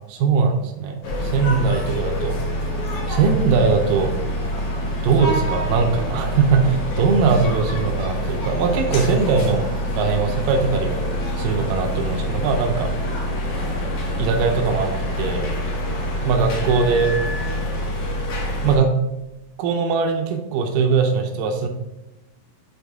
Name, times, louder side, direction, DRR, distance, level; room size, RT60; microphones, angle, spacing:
voice 1, 0.1-2.4 3.1-4.1 5.0-9.7 10.0-11.0 11.4-12.9 14.2-14.9 15.2-15.5 16.2-17.1 18.6-19.0 19.6-21.7, right 5 dB, 90° right, 4 dB, 2.3 m, -20 dB
sound 1, 1.0-18.8, equal, 70° left, 2.7 m, -26 dB
8.6 x 4.0 x 3.5 m, 0.95 s
omnidirectional pair, 3.8 m